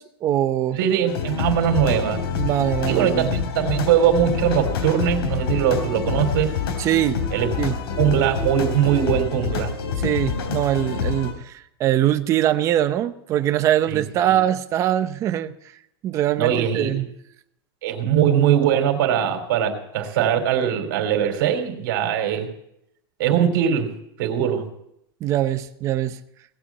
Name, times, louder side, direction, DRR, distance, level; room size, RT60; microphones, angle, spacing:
voice 1, 0.0-0.8 2.3-3.3 6.8-7.2 7.6-7.8 10.0-15.5 16.0-17.1 25.2-26.2, right 12 dB, 25° right, 9 dB, 0.8 m, -22 dB
voice 2, 0.8-2.2 2.9-6.6 7.3-7.5 8.0-9.7 13.9-14.3 16.4-17.0 17.8-22.5 23.2-23.9 24.2-24.7, right 9 dB, 60° right, 6 dB, 3.2 m, -21 dB
sound 1, 1.1-11.3, left 6 dB, 75° left, 3.5 m, -27 dB
18.0 x 8.4 x 8.4 m, 0.76 s
supercardioid pair, 170°, 13 cm